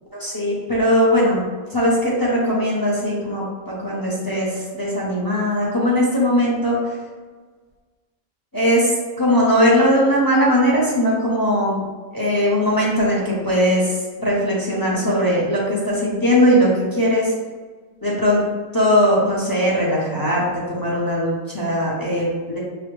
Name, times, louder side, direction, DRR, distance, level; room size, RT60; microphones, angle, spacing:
voice 1, 0.2-1.4 1.7-6.9 8.5-8.8 9.2-11.8 12.1-14.0 14.2-17.3 18.0-18.4 18.7-22.6, equal, 20° left, -6 dB, 0.5 m, -19 dB
5.0 x 2.2 x 3.1 m, 1.4 s
omnidirectional pair, 1.5 m